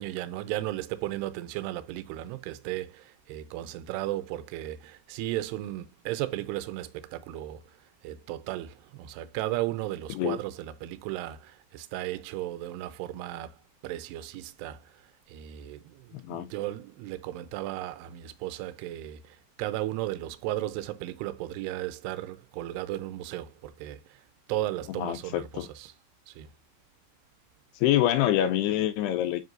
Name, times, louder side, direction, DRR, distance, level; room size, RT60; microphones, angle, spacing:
voice 1, 0.0-7.6 8.0-13.6 13.8-24.2 24.5-25.9 26.3-26.5, right 14 dB, 80° right, 2.6 m, -35 dB
voice 2, 16.1-16.5 24.9-25.7 27.8-29.4, left 12 dB, 80° left, 2.4 m, -26 dB
7.7 x 6.0 x 2.5 m
omnidirectional pair, 5.2 m